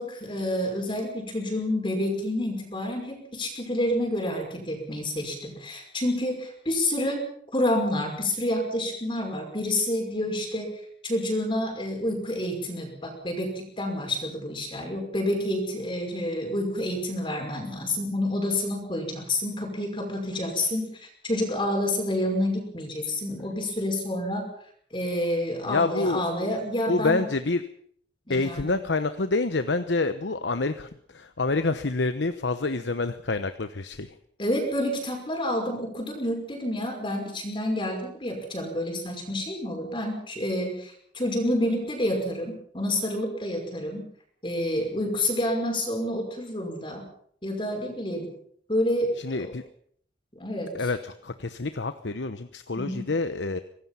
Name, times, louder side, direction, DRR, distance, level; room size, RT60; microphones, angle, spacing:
voice 1, 0.0-7.2 7.5-10.7 11.0-24.5 24.9-27.3 28.3-28.7 34.4-44.1 44.4-47.1 47.4-48.3 48.7-49.5 50.4-50.7 52.8-53.1, left 1 dB, 25° left, 1 dB, 5.6 m, -28 dB
voice 2, 25.6-26.3 26.9-27.6 28.3-34.2 49.2-49.6 50.7-53.6, left 3 dB, 75° left, 10 dB, 1.0 m, -27 dB
25.0 x 18.5 x 5.8 m, 0.63 s
head